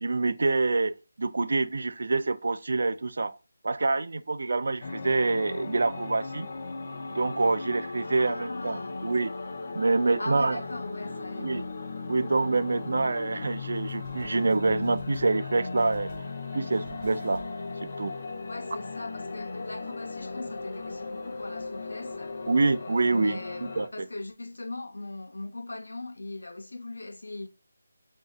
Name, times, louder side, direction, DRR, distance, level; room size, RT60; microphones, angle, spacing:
voice 1, 0.0-3.4 3.6-6.5 7.1-9.3 9.7-10.6 11.4-11.6 12.1-16.1 16.5-17.5 17.8-18.1 22.5-24.1, right 3 dB, 65° right, 0.3 m, -26 dB
sound 1, 4.8-23.9, left 3 dB, 45° left, 0.6 m, -37 dB
voice 2, 8.0-9.0 10.2-11.7 18.5-22.3 23.1-27.5, left 2 dB, 85° left, 0.7 m, -39 dB
sound 2, 13.6-15.5 15.8-16.5 16.7-17.7, right 3 dB, 20° right, 0.9 m, -51 dB
3.0 x 2.7 x 3.5 m
figure-of-eight pair, 170°, 0 cm